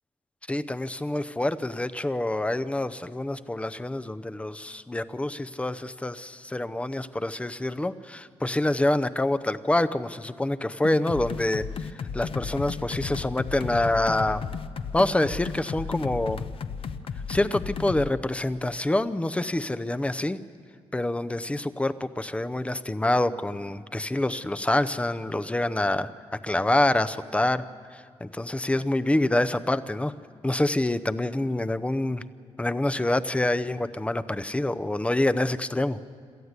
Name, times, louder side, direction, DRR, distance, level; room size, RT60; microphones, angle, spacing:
voice 1, 0.5-14.4 14.9-16.4 17.3-20.4 20.9-26.1 26.4-27.6 27.9-30.1 30.4-32.2 32.6-36.0, left 1 dB, 10° left, 13 dB, 0.7 m, -26 dB
sound 1, 10.8-18.1, left 6 dB, 55° left, 0.8 m, -34 dB
27.5 x 13.5 x 8.2 m, 2.2 s
cardioid pair, 105°, 11 cm